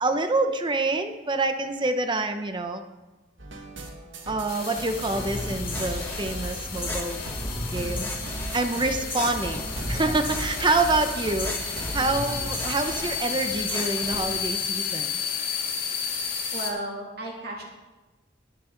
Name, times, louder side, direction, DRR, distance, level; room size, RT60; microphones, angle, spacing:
voice 1, 0.0-2.8 4.3-7.2 7.7-8.1 8.5-11.5 11.9-15.1, right 2 dB, 25° right, 7 dB, 0.7 m, -26 dB
sound 1, 3.4-12.3, right 1 dB, 70° right, 1.7 m, -37 dB
sound 2, 4.5-16.7, left 6 dB, 50° left, 2.0 m, -33 dB
sound 3, 5.1-14.3, left 1 dB, 10° left, 1.4 m, -35 dB
voice 2, 16.5-17.6, right 1 dB, 50° right, -1 dB, 2.6 m, -34 dB
21.0 x 7.2 x 3.9 m, 1.2 s
head